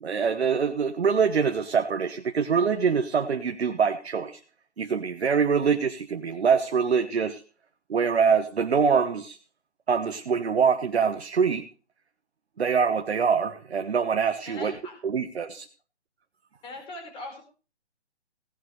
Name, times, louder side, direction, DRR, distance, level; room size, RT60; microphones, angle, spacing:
voice 1, 0.0-4.4 4.8-7.4 7.9-9.4 9.9-11.7 12.6-14.8 15.0-15.7, right 6 dB, 65° right, 6 dB, 1.3 m, -24 dB
voice 2, 14.5-15.0 16.6-17.4, left 2 dB, 15° left, 3 dB, 4.6 m, -40 dB
17.0 x 10.5 x 3.2 m, 0.36 s
figure-of-eight pair, 140°, 34 cm